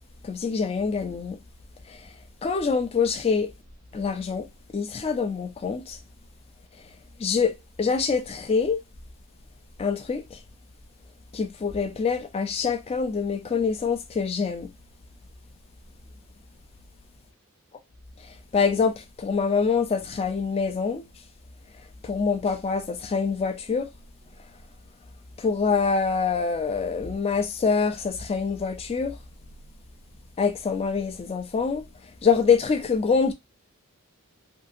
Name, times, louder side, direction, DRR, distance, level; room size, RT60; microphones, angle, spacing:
voice 1, 0.2-1.4 1.9-2.0 2.4-3.5 3.9-4.5 4.7-6.0 7.2-8.8 9.8-10.4 11.3-14.7 18.5-21.0 22.0-23.9 25.4-29.1 30.4-31.8 32.2-33.3, left 5 dB, 25° left, 0.3 m, -25 dB
2.6 x 2.6 x 2.5 m
head